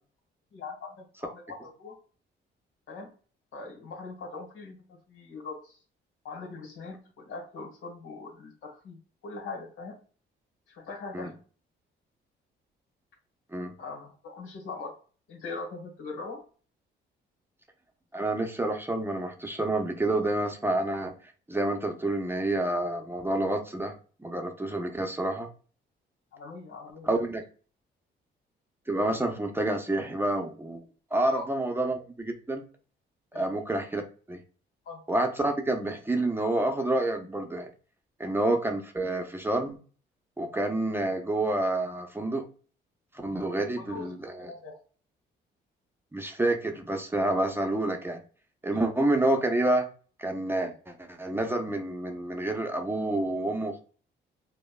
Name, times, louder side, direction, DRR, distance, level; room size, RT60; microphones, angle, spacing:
voice 1, 0.5-2.0 2.9-3.1 3.5-5.8 6.2-10.0 10.7-11.3 13.8-15.0 15.3-16.4 26.3-27.1 31.2-31.5 33.3-33.5 34.8-35.0 38.2-38.3 43.2-43.4 43.8-44.1 44.4-44.8, left 3 dB, 80° left, 1 dB, 1.4 m, -41 dB
voice 2, 18.1-21.1 21.5-23.9 24.2-25.5 27.1-27.4 28.9-30.8 31.1-32.7 33.3-34.0 34.3-34.4 35.1-37.7 38.2-39.8 40.4-42.4 43.2-44.5 46.1-48.2 48.6-49.9 50.2-53.8, right 2 dB, 10° right, 3 dB, 0.7 m, -28 dB
5.1 x 2.2 x 2.2 m, 0.39 s
cardioid pair, 90°, 20 cm